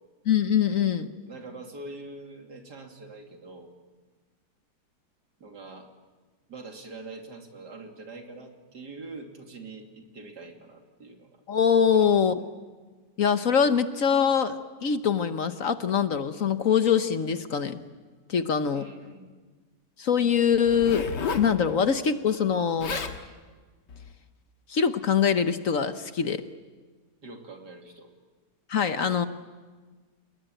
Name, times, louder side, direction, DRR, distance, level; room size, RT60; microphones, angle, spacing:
voice 1, 0.2-1.1 11.5-12.4 13.2-14.5 14.8-17.8 18.3-18.9 20.0-21.1 21.4-23.0 24.7-26.4 28.7-29.3, left 7 dB, 55° left, 10 dB, 1.3 m, -23 dB
voice 2, 1.3-3.7 5.4-5.9 6.5-11.4 11.9-12.2 18.7-19.4 27.2-28.1, right 3 dB, 75° right, 3 dB, 3.4 m, -44 dB
Zipper (clothing), 20.7-21.5 22.5-22.6 22.8-23.2 23.9-24.1, left 5 dB, 85° left, 2.4 m, -32 dB
29.0 x 20.5 x 9.0 m, 1.4 s
omnidirectional pair, 1.8 m